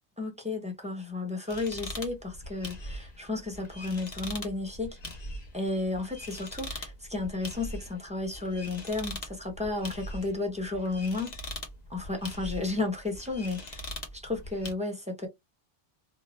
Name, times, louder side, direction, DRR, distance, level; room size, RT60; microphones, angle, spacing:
voice 1, 0.2-4.9 5.5-11.3 11.9-13.8 14.1-15.3, left 3 dB, 5° right, 0.7 m, -33 dB
sound 1, 1.5-14.7, left 1 dB, 40° left, 0.9 m, -42 dB
2.6 x 2.1 x 3.0 m
omnidirectional pair, 1.1 m